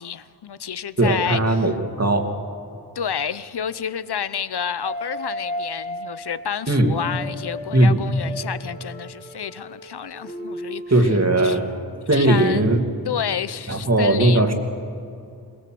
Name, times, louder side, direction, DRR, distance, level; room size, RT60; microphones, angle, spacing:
voice 1, 0.0-1.7 2.9-11.1 11.4-11.6 12.1-12.7 13.1-14.5, left 8 dB, 75° left, 15 dB, 0.8 m, -30 dB
voice 2, 1.0-2.3 6.7-7.0 7.7-8.0 10.9-11.7 12.1-12.8 13.7-14.5, right 1 dB, 40° right, 4 dB, 2.5 m, -18 dB
sound 1, 4.8-11.1, left 1 dB, 15° left, 2.8 m, -35 dB
22.0 x 20.5 x 7.7 m, 2.5 s
wide cardioid pair, 65°, 40 cm